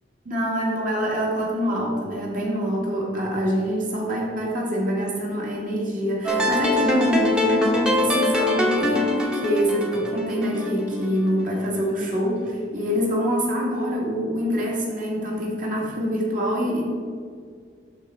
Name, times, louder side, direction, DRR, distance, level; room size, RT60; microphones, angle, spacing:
voice 1, 0.3-16.9, equal, 45° right, -3 dB, 2.0 m, -25 dB
sound 1, 6.2-11.3, left 1 dB, 5° right, 1.0 m, -23 dB
11.5 x 4.3 x 4.7 m, 2.1 s
head